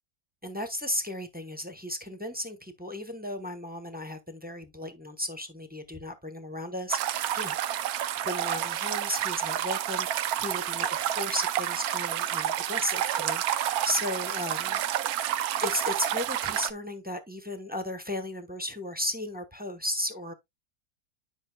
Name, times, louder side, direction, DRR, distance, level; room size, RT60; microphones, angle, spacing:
voice 1, 0.4-7.6 8.2-14.8 15.1-15.4 15.6-20.3, left 1 dB, 5° right, 0.9 m, -35 dB
sound 1, 6.9-16.7, right 11 dB, 90° right, 1.1 m, -29 dB
10.5 x 5.5 x 2.2 m
omnidirectional pair, 1.5 m